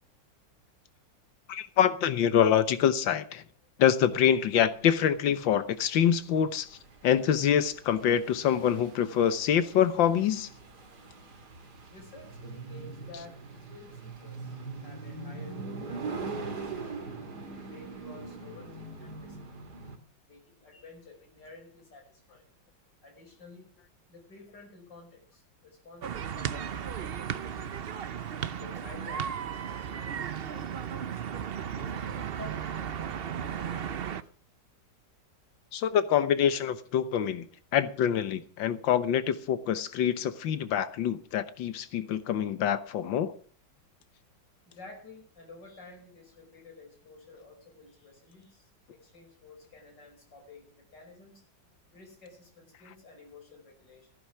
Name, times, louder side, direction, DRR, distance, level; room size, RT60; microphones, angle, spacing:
voice 1, 1.5-3.4 3.8-10.5 35.7-37.5 37.7-43.4, left 9 dB, 85° left, 1.7 m, -25 dB
sound 1, 4.1-20.0, right 4 dB, 60° right, 2.9 m, -42 dB
voice 2, 11.9-13.4 13.7-16.9 17.6-19.4 20.3-22.5 23.0-23.7 24.1-27.7 28.5-31.2 31.8-34.3 44.7-51.4 51.9-54.1, left 3 dB, 65° left, 6.2 m, -51 dB
sound 2, 26.0-34.2, right 8 dB, 85° right, 0.5 m, -35 dB
15.0 x 10.5 x 6.1 m
omnidirectional pair, 2.0 m